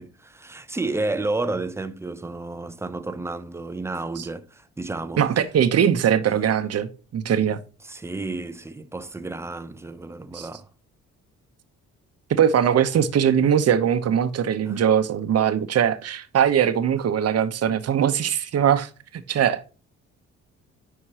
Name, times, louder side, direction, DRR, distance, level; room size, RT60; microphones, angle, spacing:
voice 1, 0.0-5.2 7.2-7.5 7.8-10.7 14.7-14.8 17.7-17.8, right 2 dB, 10° right, 0.5 m, -31 dB
voice 2, 5.2-7.6 10.3-10.5 12.3-19.7, right 9 dB, 55° right, 0.9 m, -21 dB
9.7 x 4.5 x 2.9 m
cardioid pair, 90°, 30 cm